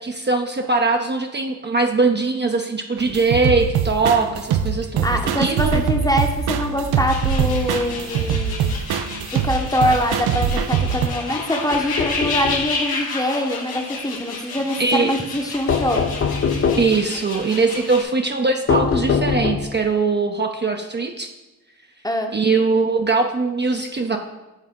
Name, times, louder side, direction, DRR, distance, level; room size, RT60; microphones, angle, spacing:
voice 1, 0.0-5.8 14.8-15.1 16.8-21.3 22.3-24.2, right 3 dB, 30° right, 3 dB, 0.6 m, -21 dB
sound 1, 3.0-11.1, right 7 dB, 90° right, 0.5 m, -23 dB
voice 2, 5.0-8.7 9.4-16.0 22.0-22.3, left 1 dB, 10° left, 3 dB, 0.9 m, -23 dB
sound 2, 7.1-18.0, left 3 dB, 75° left, 1.2 m, -31 dB
sound 3, 11.7-12.7 15.7-17.0 18.7-19.8, left 6 dB, 35° left, 0.6 m, -22 dB
8.1 x 3.6 x 3.6 m, 1.1 s
supercardioid pair, 50°, 37 cm